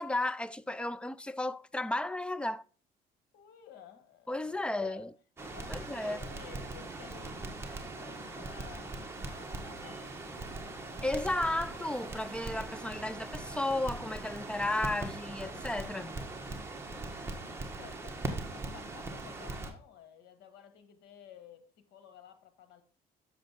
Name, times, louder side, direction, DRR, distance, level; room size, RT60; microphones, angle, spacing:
voice 1, 0.0-2.6 4.3-5.1 5.7-6.2 11.0-16.2, left 1 dB, 5° left, 0.4 m, -33 dB
voice 2, 3.3-5.1 5.4-11.0 16.7-17.4 17.8-22.8, left 9 dB, 80° left, 1.6 m, -54 dB
Crackle, 5.4-19.7, right 2 dB, 15° right, 1.6 m, -41 dB
sound 1, 9.1-15.3, right 3 dB, 35° right, 4.1 m, -59 dB
sound 2, 9.8-12.3, right 2 dB, 25° left, 2.8 m, -59 dB
7.3 x 6.7 x 4.5 m
cardioid pair, 110°, 17 cm